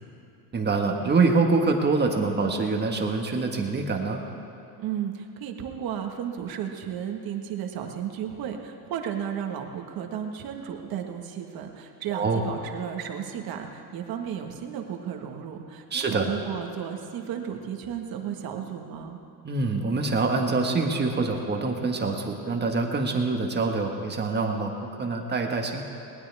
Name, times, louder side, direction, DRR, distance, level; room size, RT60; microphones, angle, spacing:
voice 1, 0.5-4.2 12.1-12.4 15.9-16.3 19.4-25.8, right 3 dB, 20° right, 2 dB, 1.7 m, -25 dB
voice 2, 4.8-19.2, right 8 dB, 50° right, 4 dB, 1.7 m, -34 dB
20.0 x 19.5 x 3.6 m, 2.8 s
cardioid pair, 130°, 45 cm